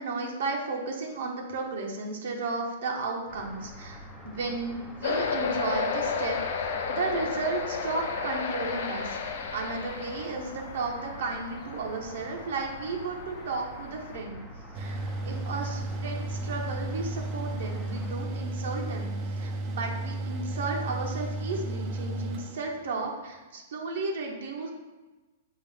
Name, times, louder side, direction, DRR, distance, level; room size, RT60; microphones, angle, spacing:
voice 1, 0.0-4.0 4.2-6.4 6.9-14.4 14.7-15.0 15.2-24.7, right 3 dB, 75° right, 0 dB, 0.8 m, -34 dB
sound 1, 3.3-18.1, equal, 10° left, 0.6 m, -45 dB
sound 2, 5.0-14.2, left 5 dB, 70° left, 0.5 m, -33 dB
Mechanical fan, 14.7-23.2, right 2 dB, 35° right, 0.5 m, -34 dB
5.5 x 2.5 x 3.4 m, 1.2 s
hypercardioid pair, 135°, 0 cm